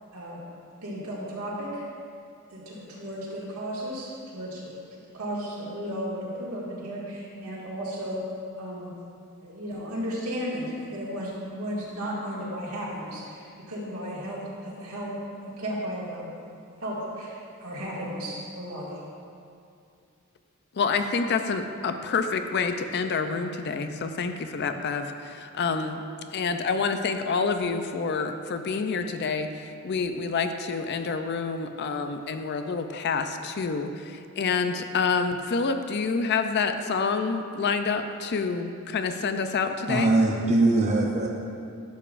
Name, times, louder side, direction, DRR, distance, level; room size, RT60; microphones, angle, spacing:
voice 1, 0.8-1.9 2.5-8.2 8.6-8.9 9.4-15.1 15.4-16.3 16.8-19.0, equal, 80° right, -6 dB, 1.9 m, -34 dB
voice 2, 20.8-26.0 26.3-40.1, left 5 dB, 50° left, 8 dB, 0.4 m, -28 dB
voice 3, 39.9-41.3, right 2 dB, 30° right, -1 dB, 0.5 m, -21 dB
11.5 x 6.9 x 2.5 m, 2.5 s
head